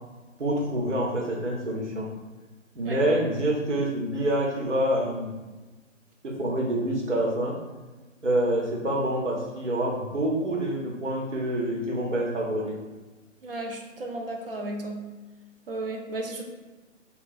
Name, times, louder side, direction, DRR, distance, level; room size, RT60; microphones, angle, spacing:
voice 1, 0.4-2.1 2.7-5.3 6.2-7.6 8.2-12.8, right 1 dB, 65° right, -2 dB, 1.1 m, -27 dB
voice 2, 13.4-15.1 15.7-16.4, right 2 dB, 45° right, 2 dB, 0.6 m, -34 dB
3.5 x 2.3 x 4.2 m, 1.2 s
figure-of-eight pair, 140°, 39 cm